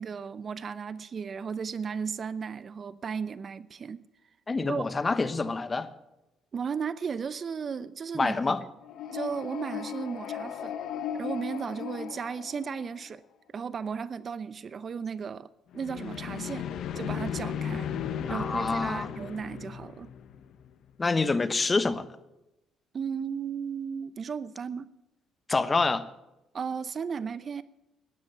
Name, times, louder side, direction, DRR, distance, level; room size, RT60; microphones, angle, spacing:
voice 1, 0.0-4.0 4.7-4.8 6.5-8.3 9.1-10.7 11.1-13.2 13.5-15.5 15.7-16.7 17.0-17.9 18.3-20.1 22.9-24.9 26.5-27.6, right 6 dB, 45° right, 0.6 m, -35 dB
voice 2, 4.5-5.9 8.1-8.6 18.3-19.1 21.0-22.1 25.5-26.0, left 3 dB, 30° left, 1.0 m, -27 dB
sound 1, 8.8-13.1 15.7-20.7, left 8 dB, 70° left, 0.8 m, -36 dB
13.0 x 10.5 x 7.3 m
supercardioid pair, 70°, 0 cm